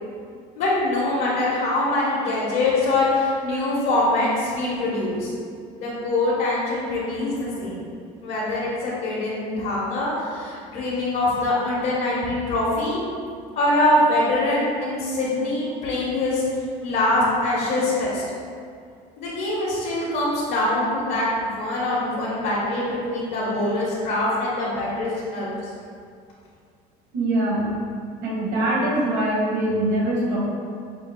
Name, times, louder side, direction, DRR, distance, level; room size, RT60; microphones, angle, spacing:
voice 1, 0.6-5.3 5.7-7.8 8.2-13.0 13.5-16.4 16.8-18.2 19.2-25.7, left 2 dB, 70° left, -8 dB, 1.1 m, -23 dB
voice 2, 27.1-27.8 28.2-30.4, right 1 dB, 75° right, -4 dB, 1.3 m, -23 dB
5.7 x 2.1 x 3.6 m, 2.3 s
cardioid pair, 125°, 18 cm